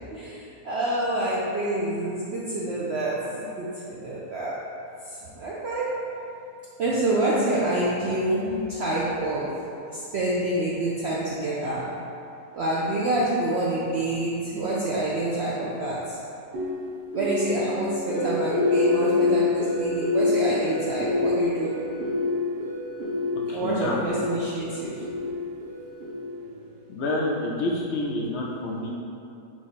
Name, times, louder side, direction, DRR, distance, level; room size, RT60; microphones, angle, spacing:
voice 1, 0.1-4.6 5.0-6.0 6.8-9.6 9.8-11.9 12.5-16.2 17.1-21.8 23.5-24.9, right 1 dB, 70° right, -7 dB, 0.6 m, -27 dB
sound 1, 16.5-26.6, left 3 dB, 85° right, 1.5 m, -27 dB
voice 2, 23.5-24.0 26.9-28.9, left 1 dB, 80° left, -2 dB, 0.6 m, -28 dB
3.7 x 3.0 x 4.1 m, 2.6 s
omnidirectional pair, 1.7 m